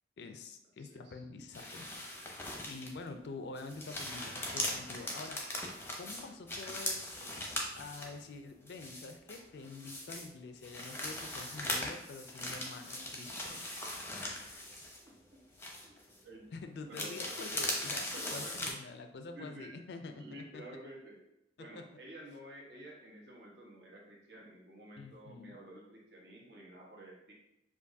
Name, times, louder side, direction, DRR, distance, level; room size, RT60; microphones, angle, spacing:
voice 1, 0.2-1.9 2.7-5.4 6.0-7.4 7.8-13.6 16.5-20.6 21.6-21.9 25.0-25.6, left 3 dB, 60° left, 7 dB, 0.4 m, -47 dB
voice 2, 0.8-1.2 15.0-15.4 15.8-15.9 16.2-16.4 16.9-17.4 18.1-18.6 19.3-19.9 20.2-21.2 21.6-27.3, right 1 dB, 60° right, -2 dB, 1.2 m, -51 dB
sound 1, 1.5-3.1 3.5-8.2 8.7-10.3 10.6-15.3 15.6-16.2 16.9-18.7, left 1 dB, 10° left, 0.6 m, -40 dB
6.7 x 2.5 x 2.6 m, 0.82 s
head